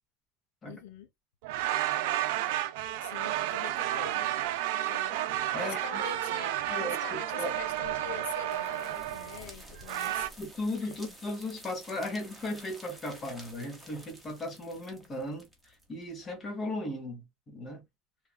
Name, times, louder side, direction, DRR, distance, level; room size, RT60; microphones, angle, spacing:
voice 1, 0.6-1.1 3.0-4.3 4.7-10.3, left 9 dB, 85° left, 0.6 m, -44 dB
sound 1, 1.4-10.3, right 14 dB, 75° right, 0.4 m, -32 dB
voice 2, 5.5-6.0 6.7-7.5 10.4-17.2 17.5-17.8, left 1 dB, 25° left, 0.9 m, -36 dB
sound 2, 7.5-16.3, right 1 dB, ahead, 0.9 m, -51 dB
3.1 x 2.3 x 2.2 m
supercardioid pair, 145°, 0 cm